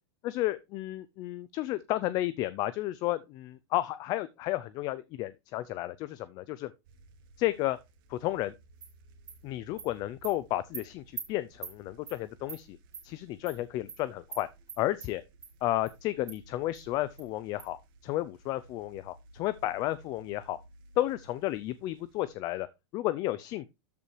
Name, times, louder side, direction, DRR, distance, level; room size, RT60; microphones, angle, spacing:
voice 1, 0.2-6.7 7.4-7.8 8.1-8.5 9.4-12.8 13.0-14.5 14.8-15.2 15.6-20.6 21.0-22.7 22.9-23.7, left 15 dB, 25° left, 0.4 m, -32 dB
sound 1, 6.8-22.3, right 2 dB, 50° right, 1.7 m, -57 dB
Animal, 8.8-8.9 9.3-9.4 9.8-9.9 10.2-10.3 10.7-10.8 11.2-11.3 11.6-11.7 12.1-12.2 12.5-12.6 12.9-13.0 13.5-13.6 13.9-14.0 14.3-14.4 14.7-15.1 15.4-15.5 15.9-16.0 16.3-16.4 16.7-16.8 17.2-17.3 17.6-17.7, right 6 dB, 15° right, 2.8 m, -41 dB
13.0 x 5.4 x 3.2 m
supercardioid pair, 160°, 14 cm